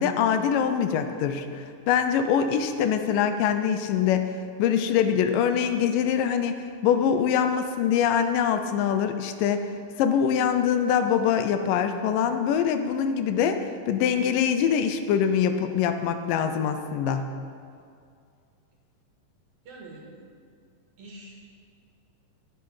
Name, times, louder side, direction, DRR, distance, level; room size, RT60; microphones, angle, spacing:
voice 1, 0.0-4.3 4.6-9.7 10.0-17.3, left 8 dB, 80° left, 8 dB, 2.3 m, -24 dB
voice 2, 19.6-20.4 21.0-21.5, right 2 dB, 60° right, -2 dB, 3.1 m, -45 dB
14.0 x 8.5 x 5.6 m, 2.3 s
omnidirectional pair, 3.9 m